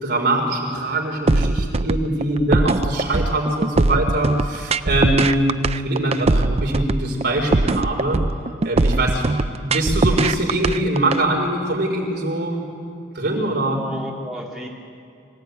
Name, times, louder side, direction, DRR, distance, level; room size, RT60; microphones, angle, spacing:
voice 1, 0.0-5.5 5.8-8.2 8.6-12.6 13.1-13.8, right 1 dB, 55° right, -1 dB, 4.5 m, -23 dB
sound 1, 1.3-11.2, right 2 dB, 30° right, 0.5 m, -20 dB
voice 2, 13.6-14.7, equal, ahead, -4 dB, 2.9 m, -34 dB
24.0 x 16.5 x 9.3 m, 2.5 s
head